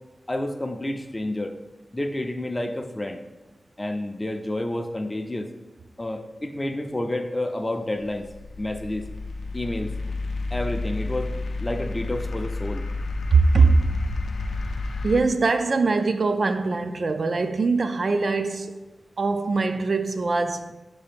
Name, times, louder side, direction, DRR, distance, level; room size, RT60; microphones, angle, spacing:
voice 1, 0.3-1.5 1.9-3.2 3.8-5.5 6.0-8.3 8.6-9.0 9.5-10.0 10.5-11.3 11.6-12.8, left 1 dB, 20° left, 0.4 m, -29 dB
sound 1, 8.0-15.2, left 3 dB, 80° left, 0.5 m, -30 dB
voice 2, 13.3-13.9 15.0-18.8 19.2-20.7, right 4 dB, 55° right, 0.3 m, -22 dB
6.7 x 2.8 x 5.1 m
wide cardioid pair, 100°, 0 cm